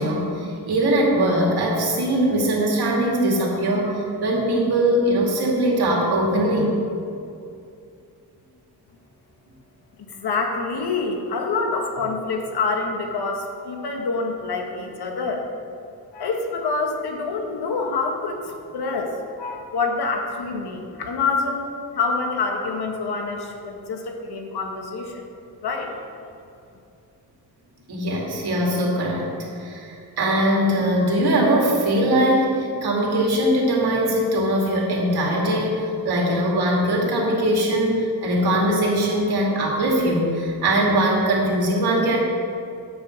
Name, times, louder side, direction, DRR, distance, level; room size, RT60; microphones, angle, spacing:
voice 1, 0.0-3.9 4.2-6.7 27.9-29.3 29.6-42.2, right 1 dB, 75° right, -3 dB, 2.5 m, -21 dB
voice 2, 10.1-15.4 16.1-19.1 19.4-21.7 21.9-25.2 25.6-25.9, left 4 dB, 80° left, 2 dB, 1.4 m, -26 dB
9.4 x 5.9 x 7.3 m, 2.6 s
wide cardioid pair, 175°, 38 cm